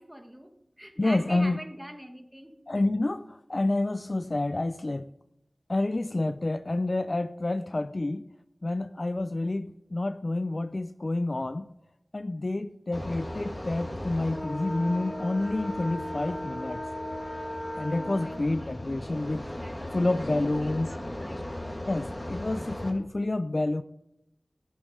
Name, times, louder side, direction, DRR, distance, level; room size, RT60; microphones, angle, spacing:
voice 1, 0.0-2.5 17.9-18.8 19.6-21.6, equal, 5° right, 6 dB, 1.8 m, -44 dB
voice 2, 1.0-1.6 2.7-5.1 5.7-8.3 8.6-11.7 12.1-16.8 17.8-19.5 19.9-20.9 21.8-23.8, left 2 dB, 45° left, 12 dB, 0.5 m, -29 dB
sound 1, 12.9-22.9, left 1 dB, 20° left, 2.7 m, -36 dB
13.5 x 11.5 x 4.8 m, 0.81 s
wide cardioid pair, 60°, 0 cm